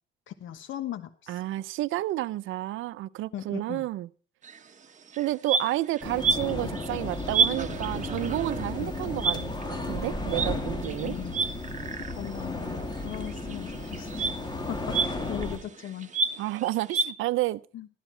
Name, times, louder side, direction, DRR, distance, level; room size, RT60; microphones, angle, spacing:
voice 1, 0.3-1.4 3.3-3.9 8.8-8.9 11.0-11.4 12.1-14.4 14.7-16.1 17.7-17.9, left 11 dB, 75° left, 1.2 m, -38 dB
voice 2, 1.3-4.1 5.2-9.5 9.8-11.1 16.4-17.6, right 16 dB, 85° right, 0.6 m, -30 dB
sound 1, 4.4-4.6 5.1-12.4 12.7-17.1, right 5 dB, 40° right, 1.4 m, -30 dB
sound 2, 6.0-15.6, left 2 dB, 20° left, 2.8 m, -34 dB
14.0 x 11.0 x 4.4 m
cardioid pair, 90°, 20 cm